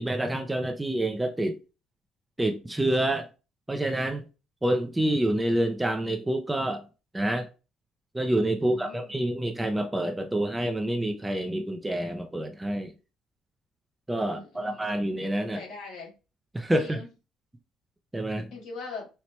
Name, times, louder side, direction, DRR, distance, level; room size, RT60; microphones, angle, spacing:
voice 1, 0.0-1.6 2.4-3.3 3.7-4.2 4.6-6.8 7.1-7.5 8.1-12.9 14.1-15.6 16.5-17.0 18.1-18.5, right 1 dB, 5° right, 0.3 m, -27 dB
voice 2, 8.6-9.1 14.2-14.9 15.4-16.1 16.7-17.1 18.5-19.1, left 3 dB, 70° left, 1.6 m, -41 dB
4.2 x 2.1 x 2.9 m
cardioid pair, 175°, 0 cm